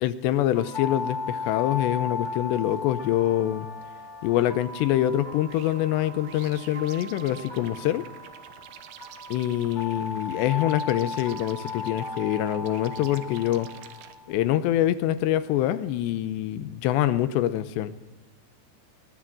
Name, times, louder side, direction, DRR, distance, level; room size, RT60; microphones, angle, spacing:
voice 1, 0.0-3.7 4.2-8.0 9.3-13.7 14.3-17.9, left 12 dB, 75° left, 13 dB, 2.9 m, -25 dB
sound 1, 0.5-14.4, left 4 dB, 40° left, 0.6 m, -36 dB
sound 2, 5.5-14.2, right 11 dB, 80° right, 3.3 m, -49 dB
21.5 x 19.0 x 7.7 m, 1.1 s
omnidirectional pair, 5.3 m